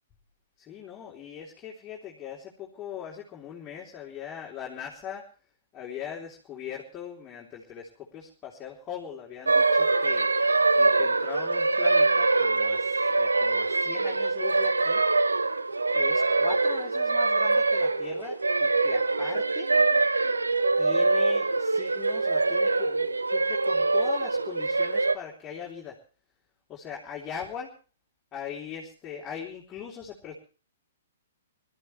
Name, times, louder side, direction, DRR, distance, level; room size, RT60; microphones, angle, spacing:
voice 1, 0.6-5.3 5.7-10.3 10.8-15.0 15.9-19.7 20.8-26.0 26.7-27.7 28.3-30.3, left 8 dB, 20° left, -2 dB, 3.5 m, -40 dB
sound 1, 9.5-25.1, right 3 dB, 80° right, 1.0 m, -24 dB
24.5 x 14.0 x 3.3 m, 0.37 s
figure-of-eight pair, 120°, 0 cm